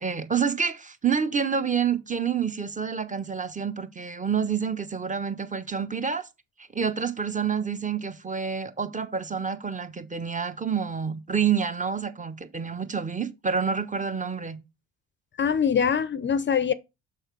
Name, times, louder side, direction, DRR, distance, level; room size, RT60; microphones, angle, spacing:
voice 1, 0.0-6.3 6.6-14.6, right 6 dB, 20° right, 1.1 m, -28 dB
voice 2, 15.4-16.7, left 7 dB, 35° left, 0.6 m, -23 dB
6.4 x 6.0 x 4.7 m
supercardioid pair, 80°, 34 cm